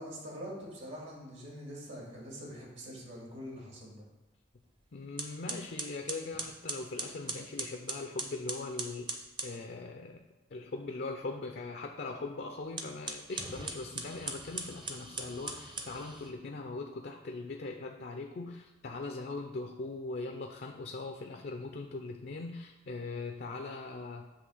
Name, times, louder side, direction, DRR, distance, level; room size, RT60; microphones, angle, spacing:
voice 1, 0.0-4.0, equal, 65° right, -3 dB, 2.1 m, -44 dB
sound 1, 4.6-4.8 5.2-9.6 12.6-16.3, right 3 dB, 25° right, 0.6 m, -40 dB
voice 2, 4.9-10.3 10.5-24.3, left 3 dB, 50° left, 4 dB, 0.5 m, -40 dB
8.0 x 3.2 x 6.2 m, 1.1 s
head